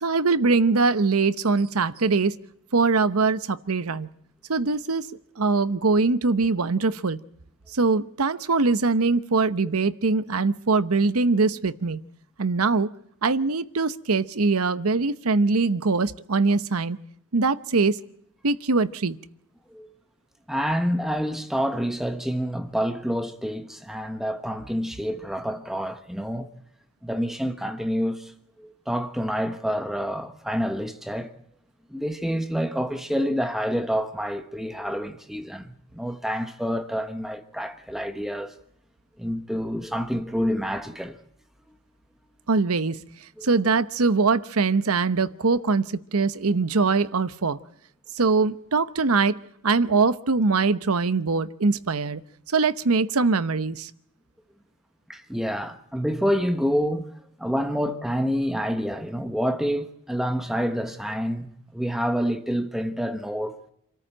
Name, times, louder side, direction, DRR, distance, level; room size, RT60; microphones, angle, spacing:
voice 1, 0.0-2.4 2.7-4.1 4.5-5.1 5.4-7.2 7.7-12.0 12.4-12.9 13.2-17.0 17.3-18.0 18.4-19.2 42.5-43.0 43.4-47.6 48.2-49.4 49.6-52.2 52.5-53.9, right 4 dB, 85° right, 0.9 m, -22 dB
voice 2, 20.5-26.5 27.0-28.3 28.6-31.3 31.9-38.5 39.2-41.2 43.4-43.5 55.1-57.1 57.4-63.6, equal, ahead, 1.1 m, -28 dB
27.5 x 14.0 x 8.8 m
head